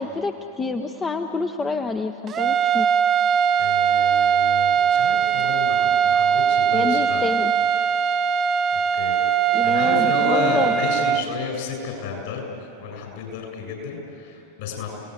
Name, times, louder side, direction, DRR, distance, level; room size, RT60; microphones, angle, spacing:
voice 1, 0.0-2.9 6.7-7.5 9.5-10.8, left 4 dB, 15° left, 6 dB, 0.9 m, -27 dB
sound 1, 2.3-11.2, right 8 dB, 30° right, 0.8 m, -20 dB
voice 2, 3.6-7.2 8.7-9.2 9.6-14.9, left 4 dB, 50° left, 2 dB, 7.4 m, -31 dB
29.5 x 19.0 x 8.1 m, 2.9 s
figure-of-eight pair, 90°, 0 cm